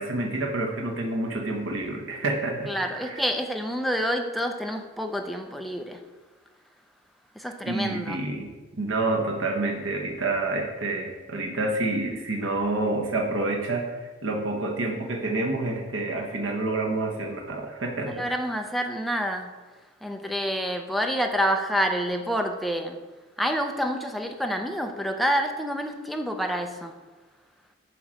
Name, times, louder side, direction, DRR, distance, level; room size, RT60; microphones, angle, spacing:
voice 1, 0.0-3.2 7.7-8.5 8.8-18.2, right 2 dB, 80° right, 1 dB, 0.9 m, -28 dB
voice 2, 2.7-6.0 7.4-8.2 18.0-19.5 20.0-23.0 23.4-26.9, equal, ahead, 4 dB, 0.5 m, -28 dB
7.7 x 3.1 x 6.1 m, 1.3 s
head